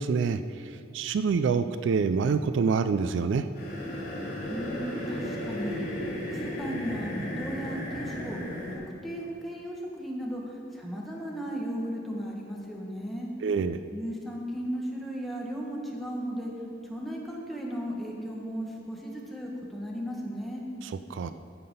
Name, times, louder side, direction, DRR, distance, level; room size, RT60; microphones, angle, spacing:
voice 1, 0.0-3.5 13.4-13.8 21.1-21.3, right 5 dB, 65° right, 11 dB, 0.3 m, -26 dB
sound 1, 3.5-8.7, equal, 45° left, 2.8 m, -34 dB
voice 2, 4.5-5.9 6.3-8.4 8.7-13.3 13.9-16.5 16.8-20.6, equal, ahead, -2 dB, 1.3 m, -35 dB
14.0 x 5.8 x 5.4 m, 2.5 s
head